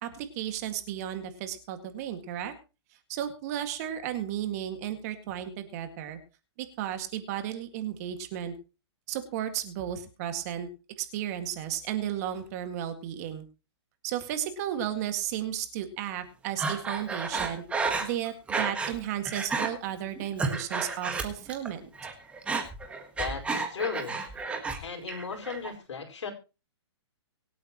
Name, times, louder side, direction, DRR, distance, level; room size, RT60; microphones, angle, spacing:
voice 1, 0.0-2.5 3.1-6.2 6.6-8.5 9.1-10.7 11.0-13.5 14.0-17.6 18.0-21.9, right 11 dB, 35° right, 8 dB, 2.0 m, -34 dB
Breathing, 16.6-19.0 19.3-19.7 20.2-21.7 22.0-24.8 25.1-25.7, right 4 dB, 10° right, 1.6 m, -31 dB
voice 2, 23.2-24.2 24.8-26.3, left 6 dB, 80° left, 3 dB, 5.1 m, -35 dB
24.5 x 8.7 x 3.0 m, 0.31 s
hypercardioid pair, 160°, 15 cm